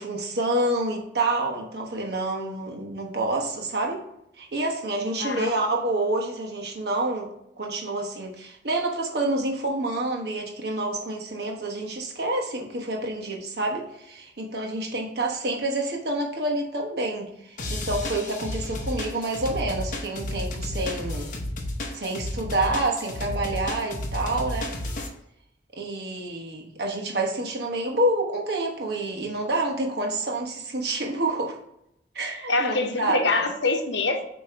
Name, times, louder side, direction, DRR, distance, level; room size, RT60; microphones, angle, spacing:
voice 1, 0.0-4.0 4.4-7.3 7.6-21.3 21.9-24.7 25.8-31.6 32.1-33.3, right 2 dB, 60° right, 0 dB, 1.1 m, -28 dB
voice 2, 5.2-5.5 32.5-34.2, left 3 dB, 75° left, 5 dB, 0.9 m, -25 dB
sound 1, 17.6-25.1, left 1 dB, 45° left, 0.9 m, -32 dB
7.5 x 3.0 x 4.5 m, 0.79 s
head